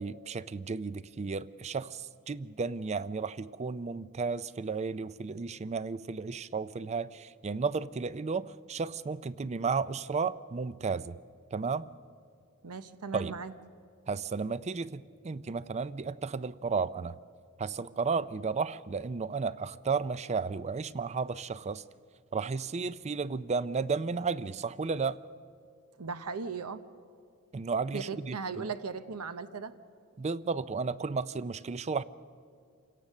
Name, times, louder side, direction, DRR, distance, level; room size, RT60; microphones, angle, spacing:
voice 1, 0.0-11.2 11.5-11.9 13.1-13.4 14.1-17.2 17.6-21.8 22.3-25.2 27.5-28.7 30.2-32.0, right 4 dB, 30° right, 17 dB, 0.4 m, -33 dB
voice 2, 12.6-13.5 26.0-26.8 27.9-29.7, right 5 dB, 90° right, 12 dB, 0.8 m, -37 dB
28.0 x 17.0 x 6.6 m, 2.3 s
head